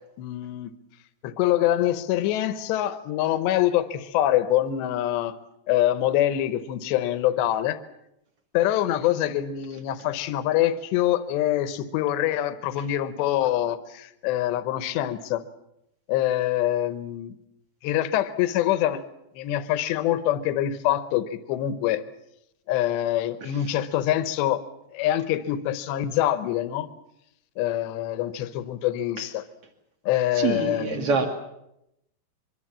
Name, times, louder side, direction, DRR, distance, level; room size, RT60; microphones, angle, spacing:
voice 1, 0.2-0.7 1.2-5.4 5.7-7.8 8.5-15.4 16.1-17.4 17.8-19.0 19.3-22.0 22.7-24.6 24.9-26.9 27.6-29.4 30.1-31.1, left 12 dB, 80° left, 13 dB, 3.3 m, -25 dB
voice 2, 30.3-31.4, right 4 dB, 40° right, 5 dB, 3.0 m, -25 dB
24.0 x 24.0 x 7.5 m, 0.82 s
omnidirectional pair, 5.0 m